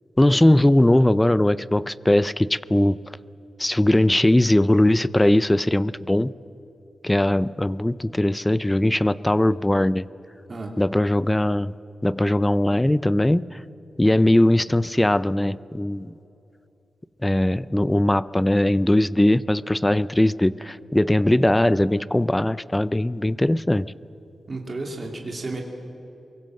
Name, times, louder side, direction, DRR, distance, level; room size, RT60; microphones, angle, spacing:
voice 1, 0.2-3.0 3.6-6.3 7.0-10.0 10.8-11.7 12.0-13.6 14.0-16.1 17.2-23.9, left 1 dB, 10° left, 18 dB, 0.5 m, -20 dB
voice 2, 24.5-25.6, right 2 dB, 35° right, 1 dB, 2.8 m, -32 dB
24.0 x 22.5 x 7.6 m, 2.8 s
wide cardioid pair, 145°, 0 cm